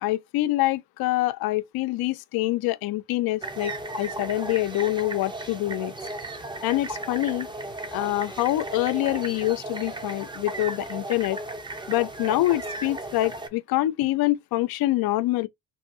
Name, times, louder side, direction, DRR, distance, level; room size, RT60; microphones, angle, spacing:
voice 1, 0.0-5.9 6.6-7.5 7.9-11.4 11.9-15.5, left 17 dB, 55° left, 0.5 m, -25 dB
sound 1, 3.4-13.5, right 2 dB, 10° right, 0.5 m, -35 dB
2.7 x 2.6 x 2.5 m
hypercardioid pair, 55°, 46 cm